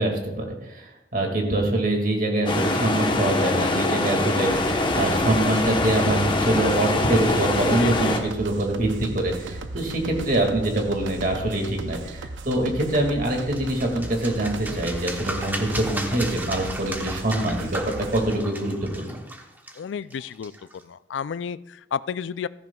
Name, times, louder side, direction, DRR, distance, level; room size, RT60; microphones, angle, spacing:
voice 1, 0.0-17.8 18.1-19.2, right 1 dB, 50° right, 2 dB, 2.2 m, -24 dB
sound 1, 2.5-8.2, left 2 dB, 25° left, 1.0 m, -24 dB
sound 2, 4.4-18.3, right 2 dB, 90° right, 0.7 m, -37 dB
voice 2, 7.8-8.3 19.8-20.5 20.8-22.5, left 7 dB, 80° left, 16 dB, 0.4 m, -31 dB
sound 3, 13.3-20.8, right 1 dB, 10° right, 1.0 m, -35 dB
15.5 x 14.0 x 2.3 m, 0.91 s
head